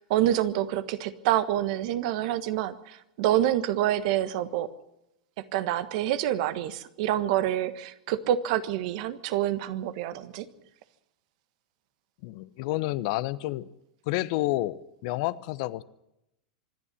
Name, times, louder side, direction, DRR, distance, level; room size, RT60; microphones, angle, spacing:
voice 1, 0.0-4.7 5.5-10.5, right 12 dB, 60° right, 12 dB, 1.5 m, -27 dB
voice 2, 12.2-13.7 14.1-15.8, left 17 dB, 55° left, 16 dB, 0.9 m, -29 dB
25.5 x 11.0 x 10.0 m, 0.86 s
hypercardioid pair, 100°, 4 cm